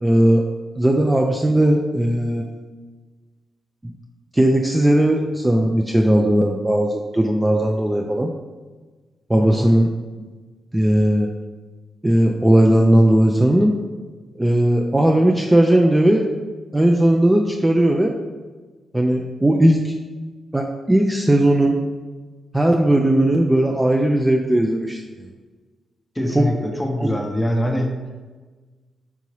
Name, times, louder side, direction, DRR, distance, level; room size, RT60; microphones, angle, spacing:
voice 1, 0.0-0.4 0.8-2.6 4.3-8.3 9.3-9.9 10.7-11.3 12.0-13.7 14.4-16.3 16.7-18.1 18.9-19.9 20.5-21.8 22.5-25.0 26.3-26.4 27.0-27.1, right 1 dB, 15° right, 2 dB, 0.3 m, -17 dB
voice 2, 9.4-9.7 26.1-28.0, equal, 15° left, 2 dB, 0.7 m, -23 dB
4.7 x 2.7 x 3.0 m, 1.3 s
cardioid pair, 65°, 0 cm